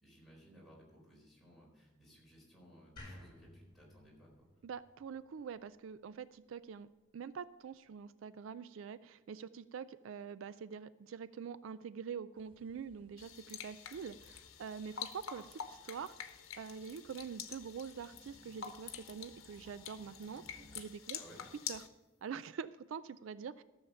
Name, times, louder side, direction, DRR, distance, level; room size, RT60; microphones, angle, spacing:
voice 1, 0.0-4.3 21.1-21.4, equal, ahead, -5 dB, 4.2 m, -59 dB
sound 1, 3.0-6.1, left 1 dB, 25° left, 4.5 m, -56 dB
voice 2, 4.6-6.9 7.1-21.2 21.7-21.9 22.2-23.6, right 6 dB, 75° right, 16 dB, 0.3 m, -45 dB
sound 2, 12.4-20.8, equal, 25° right, 1.1 m, -64 dB
sound 3, 13.2-21.9, left 8 dB, 85° left, 1.0 m, -47 dB
13.5 x 7.2 x 5.6 m, 1.2 s
head